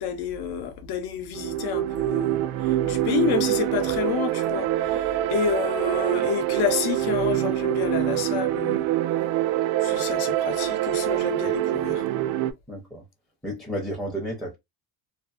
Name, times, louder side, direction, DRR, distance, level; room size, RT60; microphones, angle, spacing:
voice 1, 0.0-8.9 9.8-12.0, left 7 dB, 60° left, 0.7 m, -29 dB
sound 1, 1.3-12.5, right 13 dB, 80° right, 0.5 m, -25 dB
voice 2, 12.7-13.0 13.4-14.5, equal, ahead, 0.5 m, -32 dB
2.6 x 2.4 x 2.4 m
cardioid pair, 160°, 43 cm